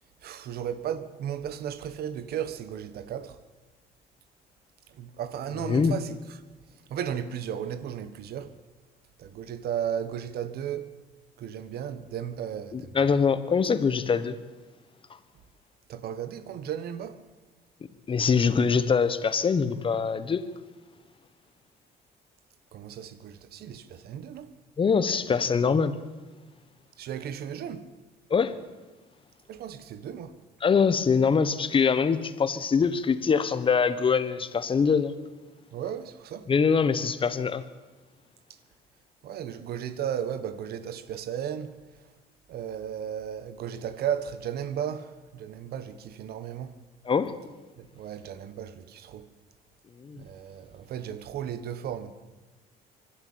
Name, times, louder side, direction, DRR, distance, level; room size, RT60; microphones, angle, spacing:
voice 1, 0.2-3.4 4.9-6.4 6.9-8.6 9.2-11.0 11.4-13.1 15.9-17.2 22.7-24.5 27.0-27.9 29.5-30.4 35.7-36.5 38.5-38.6 39.2-42.1 42.5-46.7 47.8-49.3 50.1-52.1, right 9 dB, 65° right, 1.5 m, -35 dB
voice 2, 5.6-5.9 12.7-14.3 18.1-20.4 24.8-25.9 28.3-28.6 30.6-35.1 36.5-37.6 47.1-47.3 50.0-50.2, left 6 dB, 30° left, 1.3 m, -23 dB
24.0 x 12.5 x 8.8 m
cardioid pair, 110°, 17 cm